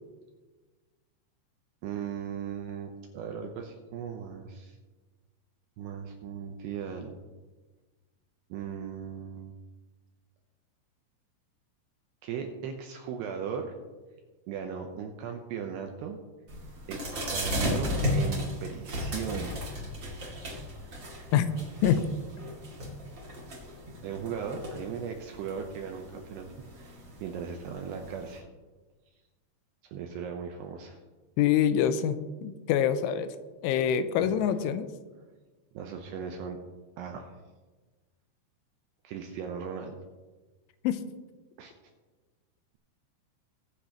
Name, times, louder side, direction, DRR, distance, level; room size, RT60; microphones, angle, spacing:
voice 1, 1.8-4.8 5.8-7.2 8.5-9.5 12.2-13.7 14.5-16.2 16.9-19.7 24.0-26.5 26.8-28.5 29.8-31.0 34.2-34.3 35.7-36.6 37.0-37.4 39.0-40.0 41.6-41.7, right 7 dB, 80° right, 3 dB, 2.5 m, -37 dB
sound 1, 16.5-28.4, equal, 35° right, 2.0 m, -35 dB
voice 2, 31.4-33.4 33.6-34.9 40.8-41.0, left 9 dB, 85° left, 11 dB, 3.0 m, -25 dB
22.0 x 8.5 x 3.0 m, 1.3 s
omnidirectional pair, 5.7 m